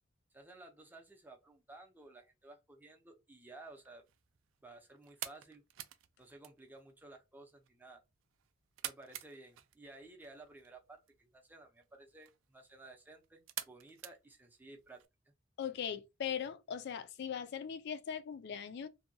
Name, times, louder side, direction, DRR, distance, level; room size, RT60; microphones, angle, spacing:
voice 1, 0.3-4.0 4.6-5.6 6.2-8.0 8.8-15.0, right 2 dB, 10° right, 0.5 m, -55 dB
sound 1, 3.7-15.0, right 13 dB, 75° right, 0.3 m, -51 dB
voice 2, 15.6-18.9, left 8 dB, 60° left, 0.4 m, -40 dB
2.7 x 2.2 x 2.6 m
head